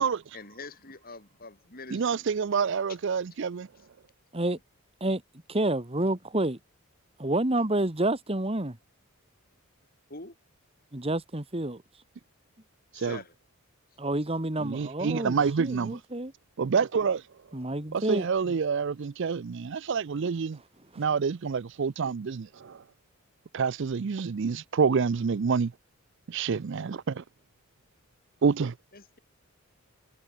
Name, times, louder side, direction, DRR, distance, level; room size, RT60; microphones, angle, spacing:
voice 1, 0.3-2.3 2.9-3.0 3.3-3.4 4.5-4.6 10.1-10.4 12.9-13.3 28.9-29.2, left 3 dB, 40° left, 5.3 m, -45 dB
voice 2, 1.9-3.7 12.9-13.2 14.6-16.0 16.6-17.2 17.9-20.6 21.0-22.8 23.5-25.7 26.3-27.2 28.4-28.7, right 5 dB, 55° right, 0.4 m, -27 dB
voice 3, 5.5-6.6 7.2-8.8 10.9-11.8 14.0-16.3 17.5-18.3, right 1 dB, 25° right, 1.6 m, -29 dB
head